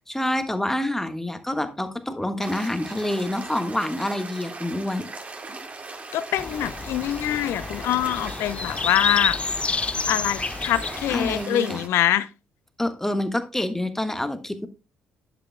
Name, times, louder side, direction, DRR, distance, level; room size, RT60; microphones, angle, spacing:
voice 1, 0.1-5.1 11.1-11.9 12.8-14.7, left 1 dB, 5° left, 1.4 m, -27 dB
sound 1, 2.4-11.9, right 3 dB, 30° right, 2.0 m, -39 dB
voice 2, 6.1-9.4 10.1-12.3, left 12 dB, 60° left, 0.7 m, -24 dB
sound 2, 6.4-11.4, left 4 dB, 25° left, 0.3 m, -29 dB
10.5 x 9.2 x 2.2 m
figure-of-eight pair, 45°, 5 cm